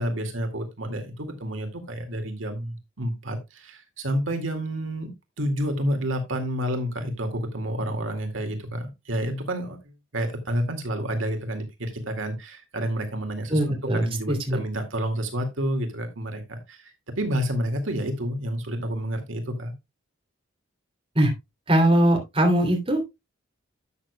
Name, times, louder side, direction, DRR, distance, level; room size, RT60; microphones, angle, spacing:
voice 1, 0.0-13.6 14.0-19.7, equal, 75° right, 5 dB, 2.1 m, -29 dB
voice 2, 13.5-14.6 21.1-21.3 21.7-23.2, right 1 dB, 30° right, 1 dB, 2.8 m, -21 dB
12.0 x 8.2 x 2.2 m, 0.22 s
head